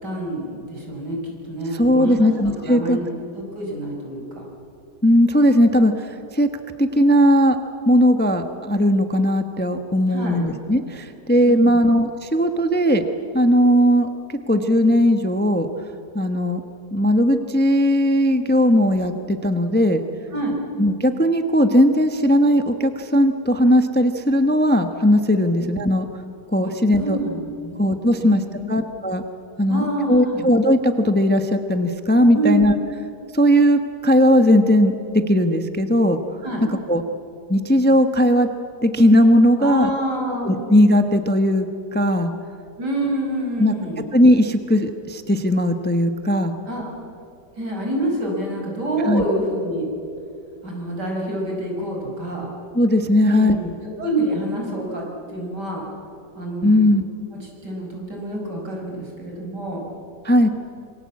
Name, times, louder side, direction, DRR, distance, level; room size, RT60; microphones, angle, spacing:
voice 1, 0.0-2.3 2.6-4.4 10.1-10.4 11.4-11.8 20.3-20.6 25.6-25.7 27.0-27.8 28.2-28.8 29.7-30.5 32.3-32.7 36.4-36.7 39.6-40.7 42.8-44.1 46.7-46.9 47.5-49.9 50.6-52.5 53.2-55.8 56.3-56.8 57.3-59.8, right 1 dB, 75° right, 0 dB, 6.0 m, -27 dB
voice 2, 1.7-3.0 5.0-6.5 6.8-7.6 7.9-13.0 13.3-15.7 16.1-16.6 16.9-20.0 20.8-26.1 26.5-27.2 27.8-28.4 28.7-29.2 29.6-32.7 33.3-36.2 36.9-37.0 37.5-38.5 38.8-39.9 40.4-41.7 41.9-42.3 43.6-43.7 44.1-46.5 49.0-49.2 52.7-53.7 56.6-57.0 60.2-60.5, equal, 5° left, 7 dB, 0.9 m, -18 dB
26.5 x 23.5 x 8.5 m, 2.6 s
omnidirectional pair, 1.8 m